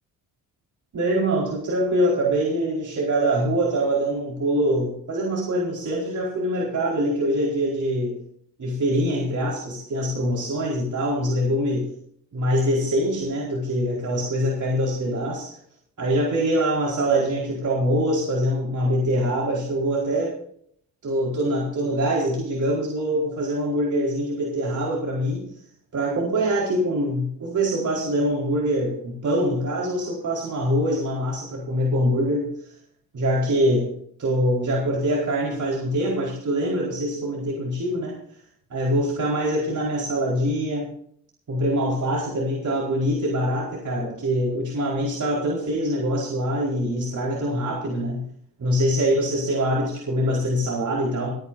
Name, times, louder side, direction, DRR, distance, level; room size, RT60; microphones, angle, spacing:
voice 1, 0.9-8.2 8.6-11.9 12.3-15.6 16.0-20.4 21.0-25.6 25.9-32.7 33.1-33.9 34.2-38.2 38.7-40.9 41.5-48.2 48.6-51.3, equal, 50° right, -3 dB, 4.7 m, -24 dB
27.5 x 9.8 x 2.7 m, 0.64 s
supercardioid pair, 65°, 38 cm